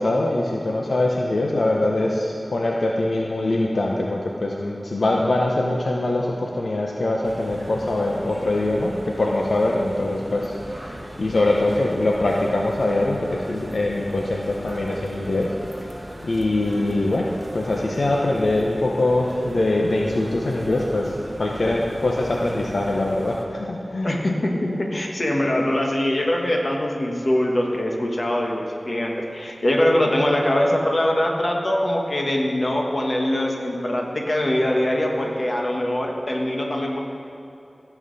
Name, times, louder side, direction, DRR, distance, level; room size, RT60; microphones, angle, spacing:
voice 1, 0.0-15.5 15.8-15.9 16.2-24.2, left 2 dB, 80° left, -1 dB, 0.8 m, -23 dB
sound 1, 7.2-23.4, right 1 dB, 20° right, 1.2 m, -38 dB
voice 2, 24.0-37.0, left 1 dB, 50° left, 0 dB, 1.4 m, -22 dB
14.5 x 7.1 x 4.1 m, 2.8 s
wide cardioid pair, 65°, 0 cm